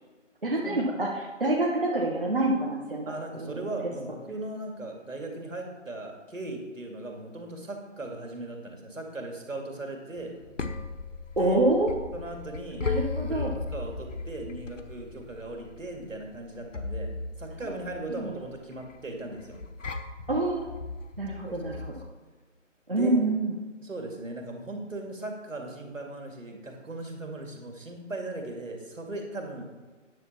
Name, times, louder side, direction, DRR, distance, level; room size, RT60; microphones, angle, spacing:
voice 1, 0.4-3.7 11.4-12.0 12.8-13.5 18.1-18.3 20.3-20.7 21.2-21.9 22.9-23.5, right 2 dB, 45° right, -2 dB, 1.0 m, -27 dB
voice 2, 3.1-10.4 11.4-11.6 12.1-12.8 13.3-17.1 17.4-19.6 21.4-21.8 22.9-23.2 23.8-29.7, right 2 dB, 75° right, 2 dB, 2.5 m, -38 dB
sound 1, 10.2-22.1, left 3 dB, 70° left, 1.1 m, -37 dB
9.7 x 7.1 x 4.4 m, 1.3 s
figure-of-eight pair, 180°, 39 cm